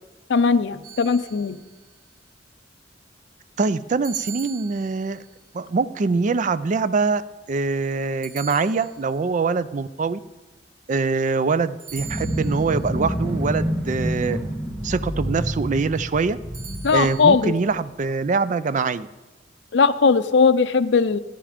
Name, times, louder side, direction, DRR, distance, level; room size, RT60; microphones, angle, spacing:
voice 1, 0.3-1.6 16.8-17.5 19.7-21.2, left 5 dB, 70° left, 10 dB, 0.5 m, -18 dB
sound 1, 0.8-1.8 4.0-5.3 8.2-9.3 11.8-12.8 16.5-17.3, right 7 dB, 75° right, 1.7 m, -40 dB
voice 2, 3.6-5.2 5.5-7.2 7.5-10.2 10.9-14.4 14.8-16.4 16.9-19.1, right 4 dB, 45° right, 15 dB, 0.4 m, -23 dB
sound 2, 11.9-17.9, equal, 10° right, 2.0 m, -28 dB
14.5 x 10.0 x 5.0 m, 1.2 s
head